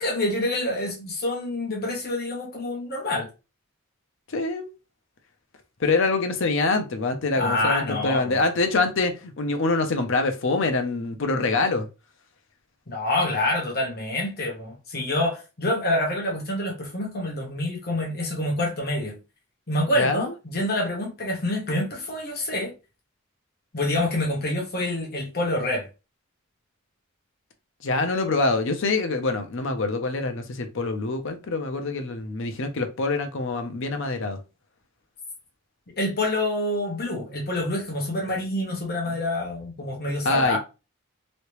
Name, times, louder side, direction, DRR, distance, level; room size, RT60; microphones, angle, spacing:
voice 1, 0.0-3.3 7.3-8.4 12.9-19.2 19.7-22.7 23.7-25.9 36.0-40.6, left 1 dB, 50° left, 1.1 m, -27 dB
voice 2, 4.3-4.7 5.8-11.9 20.0-20.3 27.8-34.4 40.2-40.6, left 3 dB, 65° left, 0.6 m, -25 dB
3.1 x 2.8 x 3.1 m
head